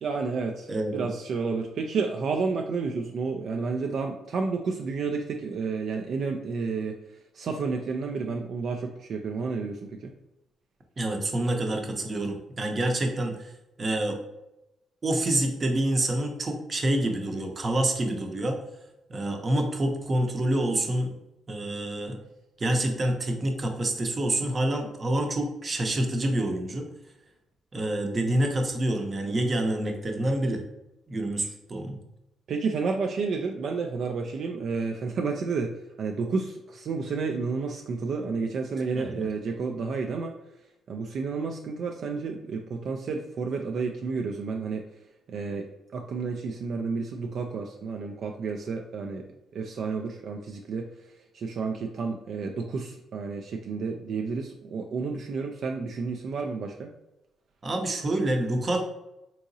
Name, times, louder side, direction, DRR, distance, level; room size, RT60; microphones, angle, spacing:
voice 1, 0.0-7.0 7.3-10.1 32.5-35.7 36.0-40.3 40.9-44.8 45.3-49.2 49.5-50.8 51.3-56.9, right 4 dB, 65° right, 2 dB, 0.3 m, -31 dB
voice 2, 0.7-1.1 11.0-13.5 13.8-14.2 15.0-18.6 19.1-21.1 21.5-22.2 22.6-26.9 27.7-30.6 31.1-32.0 38.9-39.3 57.6-58.8, right 1 dB, 35° right, 3 dB, 0.6 m, -27 dB
3.7 x 2.8 x 2.6 m, 0.92 s
cardioid pair, 90°, 0 cm